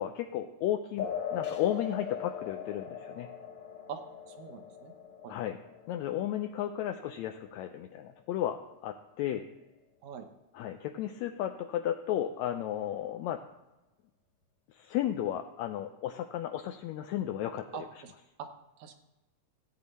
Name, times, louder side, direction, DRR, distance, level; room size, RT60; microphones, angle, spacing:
voice 1, 0.0-3.3 5.3-5.6 5.9-9.4 10.5-13.4 14.7-17.7, left 11 dB, 80° left, 6 dB, 1.6 m, -34 dB
sound 1, 1.0-8.0, left 8 dB, 60° left, 1.8 m, -41 dB
voice 2, 4.3-4.9 5.2-5.4 10.0-10.3 17.7-18.1 18.4-18.5 18.8-19.0, right 8 dB, 70° right, 6 dB, 2.0 m, -43 dB
15.0 x 9.0 x 4.1 m, 1.0 s
omnidirectional pair, 3.7 m